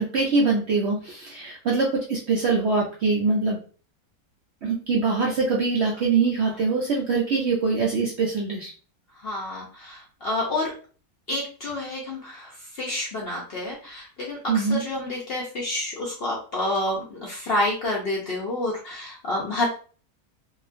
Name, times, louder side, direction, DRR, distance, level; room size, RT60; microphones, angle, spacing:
voice 1, 0.0-3.6 4.6-8.7 14.5-14.8, right 4 dB, 65° right, -2 dB, 0.6 m, -23 dB
voice 2, 9.2-10.7 11.3-19.7, left 1 dB, 60° left, -4 dB, 0.6 m, -29 dB
2.9 x 2.3 x 2.5 m, 0.40 s
omnidirectional pair, 1.6 m